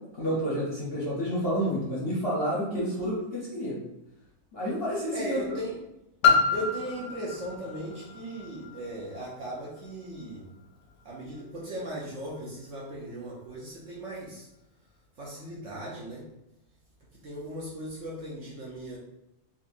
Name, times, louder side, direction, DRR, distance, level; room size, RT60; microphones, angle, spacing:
voice 1, 0.2-3.8 4.5-5.5, equal, 45° left, -6 dB, 0.8 m, -29 dB
voice 2, 5.1-5.8 6.5-10.5 11.0-14.5 15.2-16.3 17.2-19.0, right 1 dB, 60° right, -4 dB, 0.9 m, -37 dB
Piano, 6.2-11.7 12.4-12.5, left 5 dB, 90° left, 1.2 m, -29 dB
4.0 x 2.5 x 2.5 m, 0.87 s
omnidirectional pair, 1.8 m